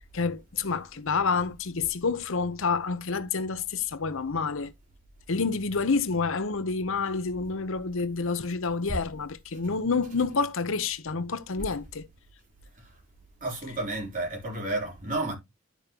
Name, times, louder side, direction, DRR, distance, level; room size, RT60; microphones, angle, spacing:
voice 1, 0.0-4.7 5.3-12.1, left 4 dB, 65° left, 0.9 m, -28 dB
voice 2, 13.4-15.4, right 2 dB, 40° right, 3.7 m, -31 dB
12.0 x 5.2 x 3.0 m
head